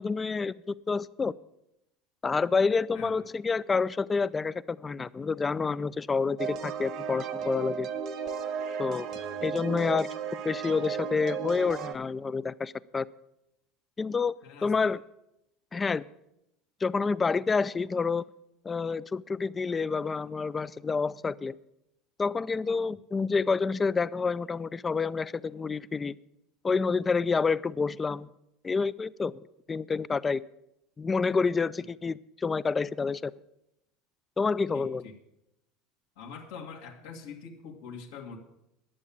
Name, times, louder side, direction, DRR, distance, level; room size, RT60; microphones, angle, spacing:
voice 1, 0.0-1.3 2.2-7.9 8.8-9.1 9.4-10.1 10.4-13.1 14.0-14.3 14.6-15.0 15.7-16.1 16.8-18.2 18.6-21.5 22.2-26.2 26.6-28.3 28.6-29.3 29.7-30.4 31.0-33.3 34.4-35.1, left 4 dB, 20° left, 0.3 m, -28 dB
sound 1, 6.4-11.9, right 7 dB, 55° right, 1.0 m, -34 dB
voice 2, 9.1-9.5 14.4-14.9 34.7-35.1 36.2-38.4, left 5 dB, 85° left, 1.9 m, -44 dB
11.0 x 7.2 x 8.5 m
supercardioid pair, 120°, 0 cm